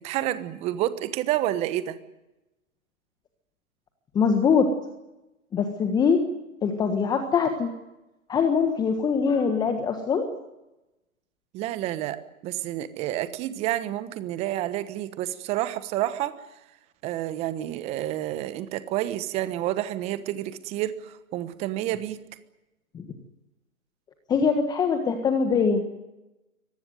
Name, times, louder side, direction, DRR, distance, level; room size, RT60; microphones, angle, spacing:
voice 1, 0.0-2.0 11.5-16.4 17.0-22.2, right 13 dB, 15° right, 14 dB, 1.2 m, -29 dB
voice 2, 4.1-4.7 5.5-6.2 6.6-7.7 8.3-10.2 22.9-23.0 24.3-25.8, left 6 dB, 10° left, 6 dB, 1.5 m, -23 dB
24.5 x 19.0 x 9.3 m, 0.96 s
figure-of-eight pair, 140°, 44 cm